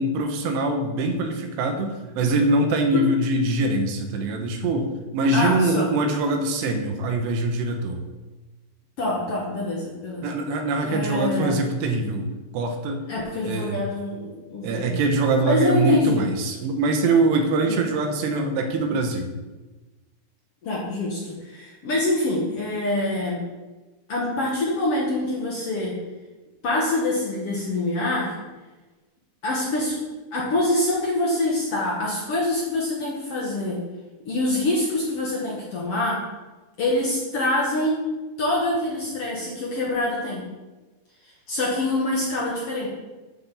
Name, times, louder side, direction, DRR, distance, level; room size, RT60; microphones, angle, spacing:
voice 1, 0.0-8.0 10.2-13.1 13.4-13.8 14.6-19.3, right 2 dB, 90° right, 5 dB, 3.1 m, -23 dB
voice 2, 5.3-5.9 9.0-10.3 10.9-11.6 13.1-14.9 15.4-16.2 17.6-17.8 20.6-23.4 24.1-25.9 26.6-28.4 29.4-30.0 30.3-33.8 34.2-36.2 36.8-38.0 38.4-40.4 41.2-42.9, left 2 dB, 60° left, -5 dB, 1.5 m, -25 dB
7.7 x 5.4 x 6.9 m, 1.2 s
omnidirectional pair, 4.8 m